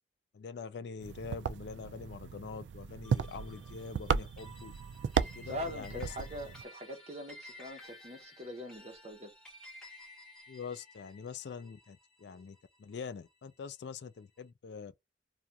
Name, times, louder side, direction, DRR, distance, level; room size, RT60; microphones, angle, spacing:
voice 1, 0.3-4.7 5.3-6.1 10.5-14.9, left 5 dB, 70° left, 0.3 m, -44 dB
sound 1, 1.0-6.6, right 6 dB, 80° right, 0.3 m, -36 dB
sound 2, 3.0-13.6, left 1 dB, 5° left, 1.0 m, -54 dB
voice 2, 5.2-9.3, left 1 dB, 35° right, 0.9 m, -43 dB
2.4 x 2.3 x 2.7 m
head